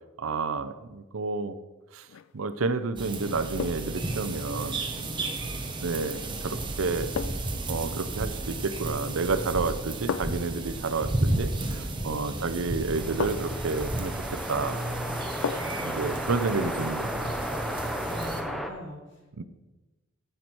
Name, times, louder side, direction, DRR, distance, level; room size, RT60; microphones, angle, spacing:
voice 1, 0.2-1.6 1.9-2.1 2.3-4.8 5.8-7.1 7.7-14.2 14.5-14.8 15.8-17.3 19.4-19.5, right 4 dB, 90° right, 12 dB, 0.6 m, -30 dB
sound 1, 2.0-2.4 3.6-4.0 6.1-6.3 7.2-7.6 9.0-9.3 10.1-10.5 12.2-12.3 13.2-13.7 15.4-15.9 16.3-16.4, left 7 dB, 80° left, 0.4 m, -34 dB
sound 2, 3.0-18.4, right 2 dB, 25° right, 1.0 m, -33 dB
voice 2, 5.0-5.5 12.0-12.3 15.6-16.3 18.0-19.0, left 1 dB, 65° left, -4 dB, 3.7 m, -43 dB
sound 3, 12.9-18.7, equal, ahead, 0.6 m, -34 dB
9.5 x 7.9 x 4.5 m, 1.1 s
head